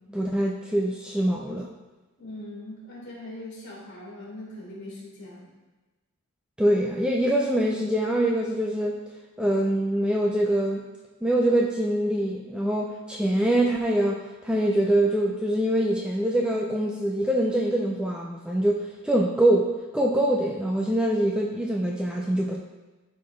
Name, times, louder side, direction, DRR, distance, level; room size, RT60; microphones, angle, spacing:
voice 1, 0.1-1.7 6.6-9.0 9.4-10.8 11.2-22.6, right 1 dB, 5° right, -1 dB, 0.4 m, -24 dB
voice 2, 2.2-5.5, left 1 dB, 50° left, -5 dB, 2.7 m, -41 dB
12.0 x 4.3 x 3.2 m, 1.2 s
head